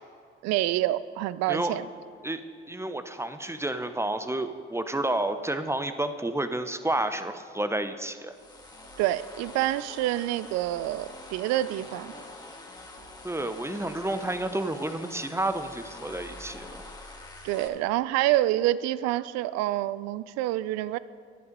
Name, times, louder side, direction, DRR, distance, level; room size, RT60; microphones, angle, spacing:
voice 1, 0.4-1.9 9.0-12.1 17.4-21.0, right 15 dB, 65° right, 17 dB, 0.5 m, -27 dB
voice 2, 2.7-8.3 13.2-16.8, right 1 dB, 10° right, 10 dB, 0.7 m, -30 dB
sound 1, 8.3-17.7, left 2 dB, 15° left, 1.9 m, -45 dB
11.0 x 10.5 x 5.2 m, 2.3 s
hypercardioid pair, 50°, 29 cm